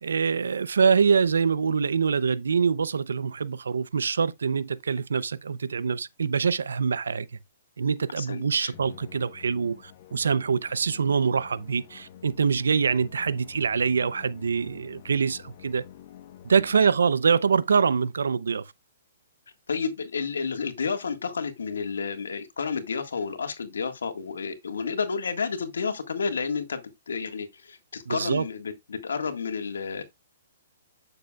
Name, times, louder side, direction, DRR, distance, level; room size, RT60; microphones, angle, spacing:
voice 1, 0.0-7.3 7.8-15.8 16.4-18.6 28.1-28.5, right 6 dB, 90° right, 0.6 m, -24 dB
voice 2, 8.2-8.7 16.8-16.9 19.7-30.0, left 5 dB, 90° left, 1.6 m, -31 dB
Musical instrument, 8.7-17.3, left 9 dB, 45° left, 1.0 m, -49 dB
9.6 x 6.7 x 2.3 m
hypercardioid pair, 145°, 0 cm